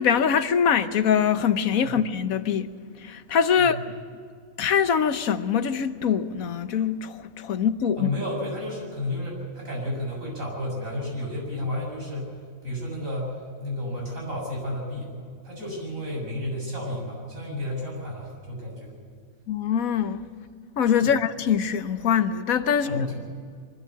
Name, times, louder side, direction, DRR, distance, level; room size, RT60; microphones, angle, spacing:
voice 1, 0.0-2.7 3.0-3.8 4.6-8.1 19.5-20.3 20.8-23.1, left 7 dB, 85° left, 1.4 m, -23 dB
voice 2, 8.0-15.1 15.4-18.9 21.0-21.1 22.8-23.1, left 1 dB, 70° right, 7.9 m, -32 dB
23.5 x 14.0 x 8.5 m
omnidirectional pair, 1.4 m